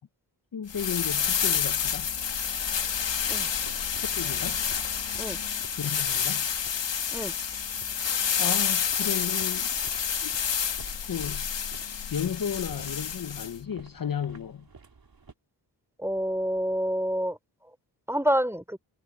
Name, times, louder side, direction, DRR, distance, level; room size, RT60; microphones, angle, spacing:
voice 1, 0.5-2.1 4.1-4.6 5.7-6.5 8.4-9.7 10.2-10.4 11.1-11.5 12.1-14.7, left 8 dB, 55° left, 0.8 m, -33 dB
sound 1, 0.7-13.5, left 7 dB, 85° left, 1.5 m, -29 dB
sound 2, 3.4-15.3, right 4 dB, 55° right, 3.6 m, -52 dB
voice 2, 16.0-17.4 18.1-18.8, equal, 5° right, 3.1 m, -27 dB
cardioid pair, 55°, 42 cm